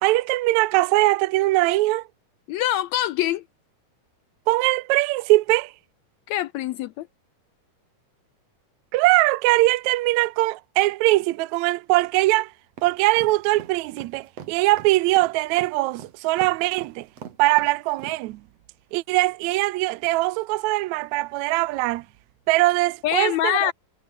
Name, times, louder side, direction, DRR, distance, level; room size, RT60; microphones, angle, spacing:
voice 1, 0.0-2.1 4.5-5.7 8.9-12.5 12.8-17.1 17.4-18.4 18.9-22.0 22.5-23.7, right 19 dB, 80° right, 1.7 m, -21 dB
voice 2, 2.5-3.4 6.3-7.1 23.0-23.7, left 13 dB, 80° left, 1.6 m, -24 dB
sound 1, 12.8-18.2, right 8 dB, 55° right, 2.7 m, -40 dB
omnidirectional pair, 3.8 m